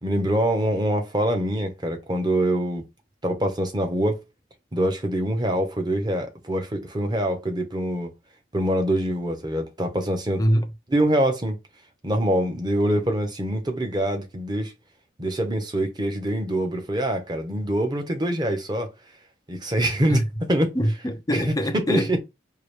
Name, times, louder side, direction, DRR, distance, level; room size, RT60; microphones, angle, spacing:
voice 1, 0.0-2.8 3.2-4.2 4.7-8.1 8.5-10.4 10.9-11.6 12.0-14.7 15.2-18.9 19.5-20.2 20.5-20.7 21.3-22.2, right 1 dB, 25° right, 0.8 m, -24 dB
voice 2, 10.4-10.7 20.1-20.3 20.7-22.2, equal, 20° left, 0.5 m, -24 dB
4.7 x 2.4 x 3.2 m
head